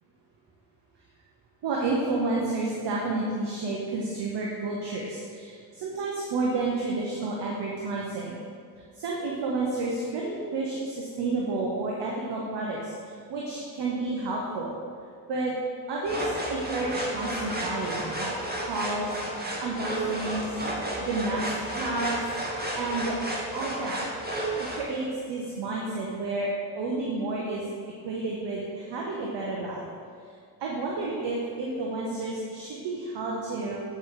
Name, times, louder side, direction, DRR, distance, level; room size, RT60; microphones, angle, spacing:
voice 1, 1.6-8.4 8.9-14.7 15.3-15.5 15.9-20.5 21.0-23.2 23.5-24.0 24.6-26.5 26.7-27.6 28.0-29.8 30.6-33.8, right 2 dB, 60° right, -3 dB, 1.4 m, -31 dB
sound 1, 16.1-24.8, right 1 dB, 20° right, 1.9 m, -32 dB
8.2 x 4.8 x 5.8 m, 2.2 s
hypercardioid pair, 50°, 47 cm